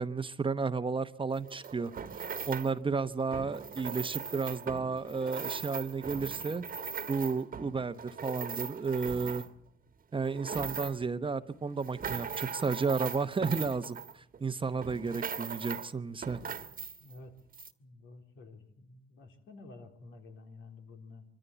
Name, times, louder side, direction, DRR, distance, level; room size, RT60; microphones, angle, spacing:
voice 1, 0.0-1.9 2.2-6.6 7.1-9.4 10.1-16.4, right 4 dB, 25° right, 12 dB, 1.0 m, -32 dB
sound 1, 1.3-2.8 3.3-9.7 10.1-11.1 11.6-14.5 14.8-15.9 16.2-17.2 17.5-17.7, right 6 dB, 45° right, 1.4 m, -40 dB
voice 2, 17.0-17.4 17.8-21.2, left 3 dB, 80° left, 4 dB, 3.6 m, -51 dB
24.5 x 14.0 x 8.1 m, 0.76 s
cardioid pair, 90°, 20 cm